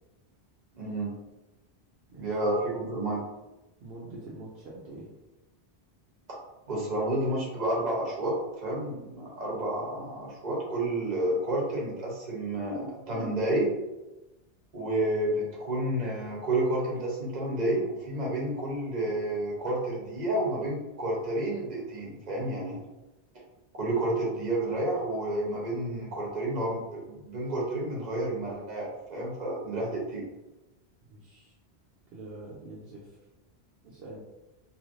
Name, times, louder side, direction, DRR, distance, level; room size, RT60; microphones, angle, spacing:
voice 1, 0.7-1.1 2.2-3.2 6.7-13.7 14.7-22.8 23.7-30.3, right 1 dB, 45° right, -3 dB, 0.9 m, -30 dB
voice 2, 3.8-5.1 31.1-31.6 32.1-33.2 33.8-34.2, right 2 dB, 65° right, -5 dB, 0.8 m, -45 dB
3.1 x 2.6 x 2.6 m, 1.0 s
omnidirectional pair, 1.1 m